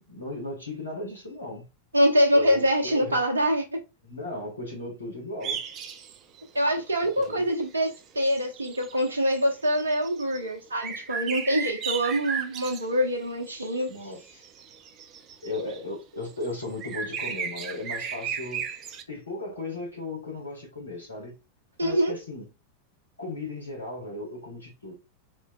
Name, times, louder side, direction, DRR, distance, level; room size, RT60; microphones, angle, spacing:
voice 1, 0.0-1.7 2.3-3.2 4.0-5.6 7.2-7.5 13.9-14.4 15.4-18.7 19.1-21.3 21.8-22.5 23.2-24.9, left 2 dB, 80° left, 1.7 m, -36 dB
voice 2, 1.9-3.8 6.5-13.9 21.8-22.1, equal, 75° right, 0.8 m, -24 dB
sound 1, 5.4-6.4 6.8-7.3 7.9-8.0 8.2-10.4 10.8-13.2 13.5-15.8 16.2-19.0, right 6 dB, 35° right, 0.5 m, -35 dB
4.2 x 3.0 x 2.4 m
figure-of-eight pair, 90°, 0 cm